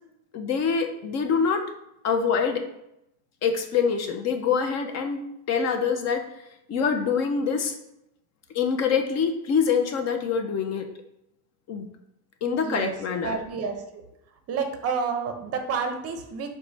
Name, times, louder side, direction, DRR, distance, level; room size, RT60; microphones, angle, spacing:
voice 1, 0.3-1.6 2.0-2.6 3.4-6.2 6.7-7.7 8.5-10.9 11.7-11.9 12.4-13.4, left 6 dB, 40° left, 6 dB, 0.4 m, -25 dB
voice 2, 12.6-12.9 13.2-13.8 14.5-16.5, right 5 dB, 35° right, 6 dB, 0.6 m, -29 dB
4.7 x 2.2 x 3.9 m, 0.82 s
cardioid pair, 135°, 45 cm